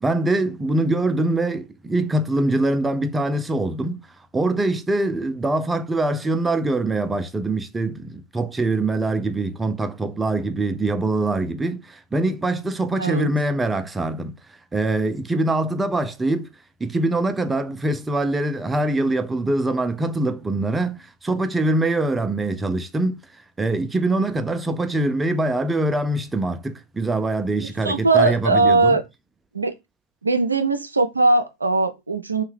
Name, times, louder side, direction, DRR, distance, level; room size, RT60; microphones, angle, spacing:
voice 1, 0.0-4.1 4.3-14.3 14.7-16.5 16.8-23.2 23.6-29.0, right 2 dB, 10° right, 0.3 m, -23 dB
voice 2, 13.0-13.3 27.6-29.0 29.5-29.7 30.2-32.4, right 3 dB, 80° right, 0.4 m, -20 dB
2.7 x 2.1 x 3.1 m
figure-of-eight pair, 90°, 0 cm